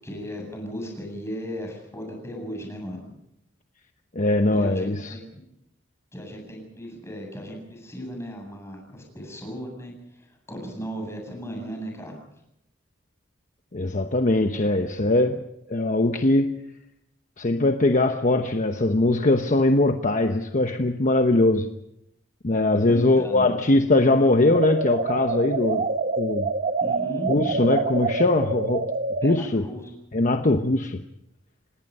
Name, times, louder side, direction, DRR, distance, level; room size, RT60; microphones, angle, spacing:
voice 1, 0.0-3.0 4.5-5.4 6.1-12.1 22.7-23.5 26.8-27.7 29.2-29.8, equal, 15° left, 1 dB, 8.0 m, -36 dB
voice 2, 4.1-5.2 13.7-15.4 15.7-16.6 17.4-21.7 22.4-25.9 26.2-26.5 27.3-28.9 29.2-29.6 30.1-31.0, left 2 dB, 40° left, 6 dB, 1.0 m, -21 dB
sound 1, 24.5-29.4, right 3 dB, 45° right, 0.9 m, -27 dB
27.5 x 19.0 x 5.5 m, 0.80 s
head